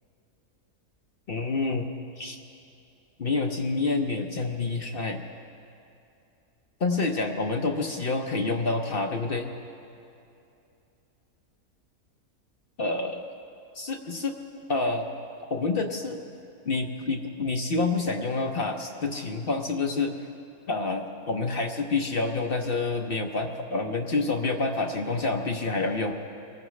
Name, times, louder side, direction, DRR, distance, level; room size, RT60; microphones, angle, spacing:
voice 1, 1.3-1.9 2.2-2.4 3.2-5.2 6.8-9.5 12.8-13.2 13.7-14.3 14.7-15.1 15.5-16.2 16.7-20.1 20.7-26.1, left 3 dB, 50° left, 3 dB, 0.8 m, -28 dB
23.5 x 15.0 x 3.2 m, 2.6 s
omnidirectional pair, 1.6 m